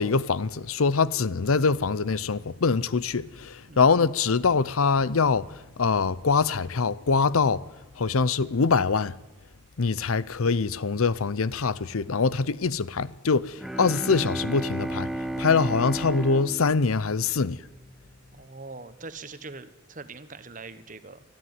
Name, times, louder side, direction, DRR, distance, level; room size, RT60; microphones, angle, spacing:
voice 1, 0.0-7.6 8.0-9.1 9.8-15.1 15.4-17.6, left 4 dB, 80° left, 0.7 m, -24 dB
Bowed string instrument, 13.6-17.9, right 1 dB, ahead, 0.7 m, -33 dB
voice 2, 18.3-21.2, right 3 dB, 35° right, 1.2 m, -42 dB
24.5 x 14.0 x 9.6 m
head